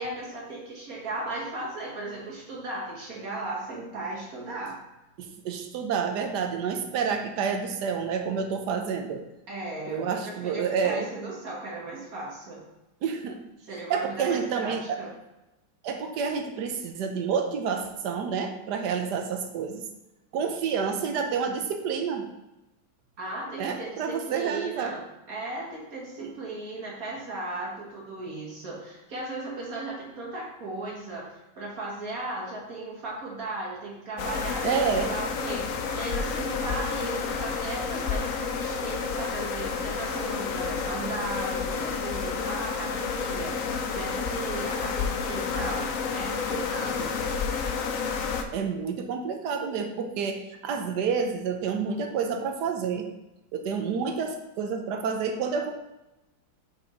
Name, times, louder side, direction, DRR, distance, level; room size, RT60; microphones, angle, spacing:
voice 1, 0.0-4.8 9.5-12.6 13.7-15.1 23.2-25.0 25.3-47.1 47.8-47.9, right 2 dB, 50° right, -3 dB, 2.0 m, -36 dB
voice 2, 5.2-9.2 9.9-11.1 13.0-13.4 13.9-15.0 15.8-19.9 20.3-22.3 23.6-25.0 26.2-26.3 34.6-35.1 48.5-53.1 53.5-55.7, right 6 dB, 65° right, 5 dB, 1.3 m, -29 dB
sound 1, 34.2-48.4, left 5 dB, 80° left, 0.7 m, -30 dB
5.6 x 5.1 x 4.5 m, 0.97 s
omnidirectional pair, 2.1 m